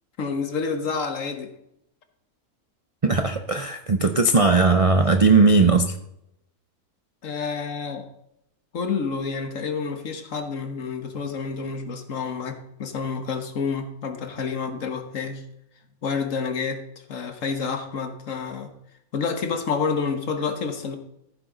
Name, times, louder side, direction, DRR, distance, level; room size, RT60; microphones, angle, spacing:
voice 1, 0.2-1.5 7.2-8.1 8.7-15.4 16.0-16.8 17.1-18.7 19.1-21.0, left 5 dB, 60° left, 7 dB, 1.6 m, -29 dB
voice 2, 3.0-5.9, right 3 dB, 45° right, 7 dB, 0.4 m, -18 dB
14.5 x 9.1 x 3.9 m, 0.79 s
omnidirectional pair, 1.6 m